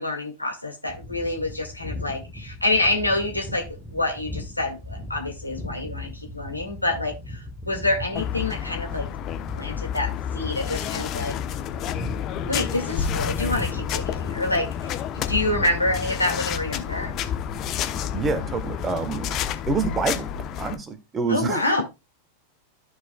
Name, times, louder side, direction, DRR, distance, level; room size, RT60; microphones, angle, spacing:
voice 1, 0.0-9.1 9.5-11.4 12.5-17.1 21.3-21.8, left 2 dB, 85° left, 2.0 m, -27 dB
sound 1, 0.9-19.5, left 1 dB, ahead, 1.4 m, -38 dB
sound 2, 8.2-20.8, left 9 dB, 35° left, 0.9 m, -30 dB
voice 2, 18.1-19.3 19.7-20.3 20.6-21.8, right 4 dB, 20° right, 1.1 m, -27 dB
14.0 x 4.8 x 2.3 m
figure-of-eight pair, 90°, 0 cm